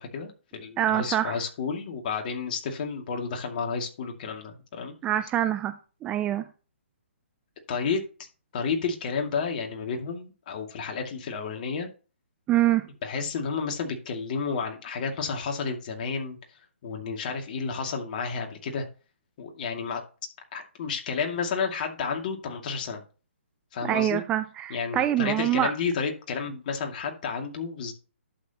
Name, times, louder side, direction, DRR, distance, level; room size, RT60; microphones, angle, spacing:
voice 1, 0.0-4.9 7.7-8.0 8.5-11.9 13.0-16.4 16.8-18.9 19.4-20.0 20.5-23.0 23.7-24.2 24.7-27.9, left 5 dB, 40° left, 2.4 m, -31 dB
voice 2, 0.8-1.4 5.0-6.5 12.5-12.9 23.8-25.7, right 12 dB, 15° right, 0.4 m, -25 dB
11.5 x 7.8 x 3.0 m
hypercardioid pair, 145°, 7 cm